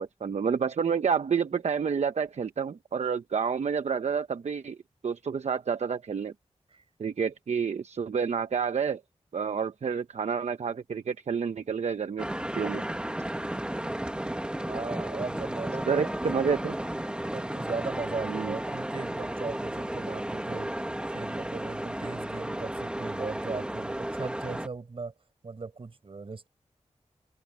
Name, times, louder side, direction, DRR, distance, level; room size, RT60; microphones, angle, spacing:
voice 1, 0.0-4.8 5.0-6.3 7.0-9.0 9.3-12.9 15.9-16.8 18.3-18.5, right 6 dB, 70° right, 0.9 m, -29 dB
sound 1, 12.2-24.7, right 1 dB, 10° right, 1.3 m, -33 dB
voice 2, 14.6-16.7 17.3-20.7 21.1-25.1 25.4-26.5, right 4 dB, 50° right, 4.8 m, -38 dB
wide cardioid pair, 115°, 12 cm